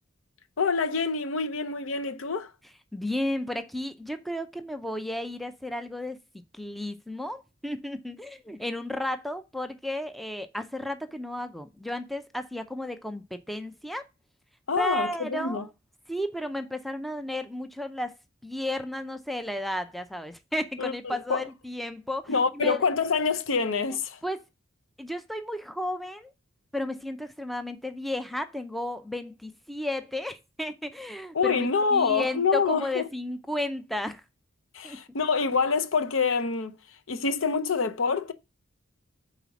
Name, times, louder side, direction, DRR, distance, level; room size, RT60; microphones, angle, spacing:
voice 1, 0.6-2.5 14.7-15.7 20.8-21.5 22.3-24.2 31.3-33.1 34.7-38.3, left 5 dB, 70° left, 0.7 m, -26 dB
voice 2, 2.9-6.2 6.5-14.0 14.8-15.7 16.1-18.1 18.4-22.8 24.2-24.4 25.0-26.3 26.7-34.2 34.8-35.0, left 1 dB, ahead, 0.5 m, -33 dB
5.5 x 4.1 x 5.9 m
head